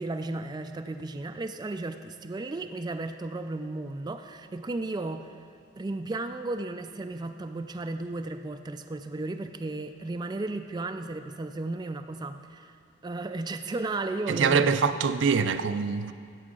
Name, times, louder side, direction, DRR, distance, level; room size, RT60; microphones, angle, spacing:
voice 1, 0.0-5.3 5.8-12.8 13.0-14.7, right 2 dB, 25° right, 0.3 m, -34 dB
voice 2, 14.3-16.1, right 5 dB, 85° right, 0.5 m, -24 dB
16.0 x 7.0 x 3.8 m
head